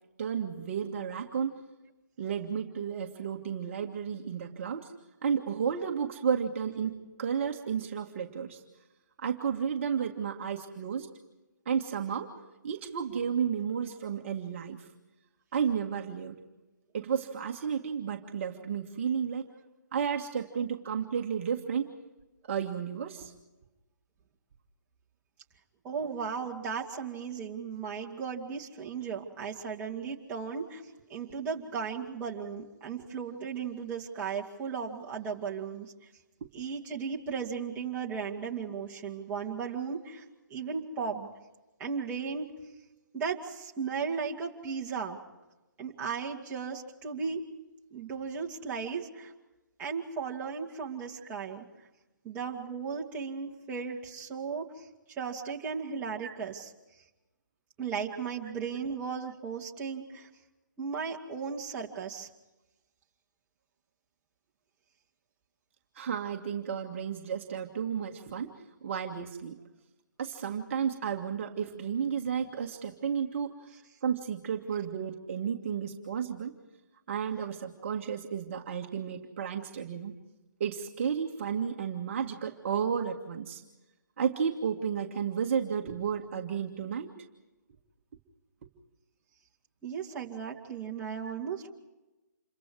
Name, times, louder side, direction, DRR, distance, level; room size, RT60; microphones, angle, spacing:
voice 1, 0.2-1.6 2.2-4.9 5.2-8.6 9.2-11.1 11.7-12.3 12.6-14.9 15.5-16.3 16.9-19.5 19.9-21.9 22.4-23.3 36.4-36.5 56.2-56.4 66.0-68.5 68.8-69.6 70.2-73.5 74.0-76.5 77.1-80.1 80.6-83.6 84.2-87.1 90.1-90.3, right 7 dB, 40° right, 2 dB, 1.9 m, -32 dB
voice 2, 25.8-30.8 31.1-35.9 36.5-40.2 40.5-41.3 41.8-42.5 43.1-45.2 45.8-47.4 47.9-49.3 49.8-51.6 52.2-56.7 57.8-60.3 60.8-62.3 89.8-91.7, right 6 dB, 15° right, -2 dB, 2.5 m, -36 dB
28.0 x 23.5 x 4.8 m, 1.1 s
figure-of-eight pair, 145°, 10 cm